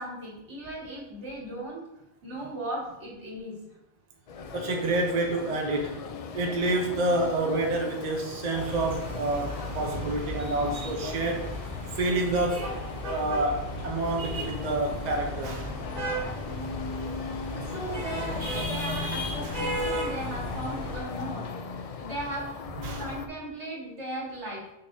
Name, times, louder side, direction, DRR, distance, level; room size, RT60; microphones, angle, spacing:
voice 1, 0.0-1.8 2.2-3.6 17.5-21.5 22.0-22.5 23.0-24.7, right 1 dB, 70° right, -5 dB, 2.4 m, -37 dB
sound 1, 4.3-23.3, left 4 dB, 75° left, 0.3 m, -38 dB
voice 2, 4.5-6.0 6.3-11.5 11.9-12.7 13.1-15.7 19.4-19.6 22.8-23.1, right 2 dB, 40° right, 1 dB, 0.8 m, -28 dB
sound 2, 8.5-21.0, equal, 90° right, 2.0 m, -35 dB
6.7 x 5.7 x 2.7 m, 0.91 s
omnidirectional pair, 1.2 m